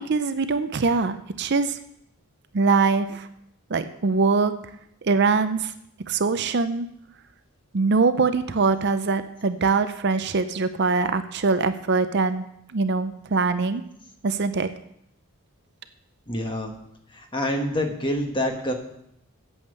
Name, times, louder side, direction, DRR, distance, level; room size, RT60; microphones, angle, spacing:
voice 1, 0.1-1.8 2.5-3.3 3.7-4.5 5.0-5.7 6.1-6.9 7.7-12.4 12.7-13.8 14.2-14.7, right 4 dB, 50° right, 10 dB, 0.5 m, -23 dB
voice 2, 16.3-16.7 17.1-18.7, left 1 dB, 20° left, 3 dB, 1.3 m, -26 dB
8.7 x 8.0 x 6.6 m, 0.75 s
head